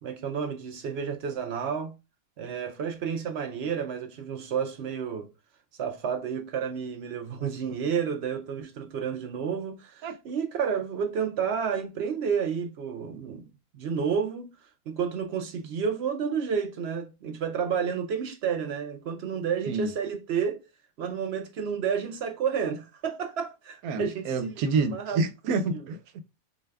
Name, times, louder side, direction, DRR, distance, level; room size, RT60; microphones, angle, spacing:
voice 1, 0.0-1.9 2.4-5.3 5.8-13.5 13.8-14.5 14.9-20.6 21.0-25.2, right 7 dB, 65° right, 0.6 m, -30 dB
voice 2, 23.8-26.2, right 4 dB, 90° right, 1.1 m, -28 dB
4.6 x 2.2 x 3.3 m
omnidirectional pair, 1.5 m